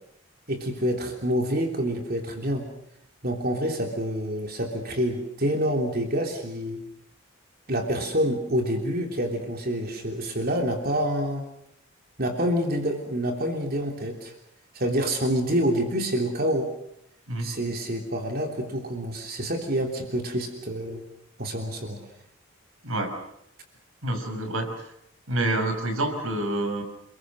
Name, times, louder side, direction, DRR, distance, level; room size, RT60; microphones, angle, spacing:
voice 1, 0.5-2.7 3.2-6.8 7.7-11.5 12.2-14.3 14.7-16.7 17.4-21.0 21.4-22.0, equal, 45° right, 3 dB, 3.2 m, -27 dB
voice 2, 22.8-23.2 24.0-24.9 25.3-26.8, right 1 dB, 85° right, 7 dB, 5.5 m, -27 dB
29.5 x 22.0 x 6.4 m, 0.77 s
head